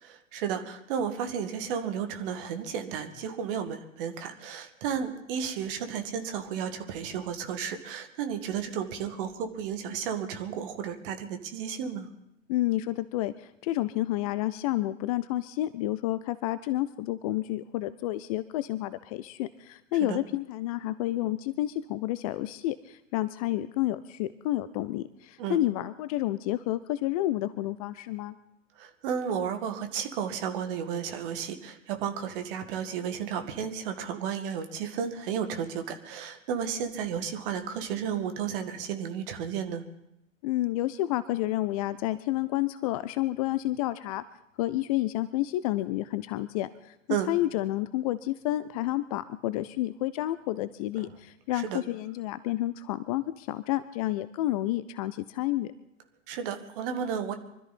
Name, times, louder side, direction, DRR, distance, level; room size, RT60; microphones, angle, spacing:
voice 1, 0.0-12.1 20.0-20.2 25.4-25.6 28.8-39.8 47.1-47.3 51.5-51.8 56.3-57.3, right 7 dB, 45° right, 7 dB, 2.0 m, -33 dB
voice 2, 12.5-28.4 40.4-44.2 44.6-46.9 47.3-55.7, left 15 dB, 30° left, 15 dB, 0.5 m, -30 dB
24.5 x 13.5 x 4.2 m, 0.83 s
figure-of-eight pair, 100°, 39 cm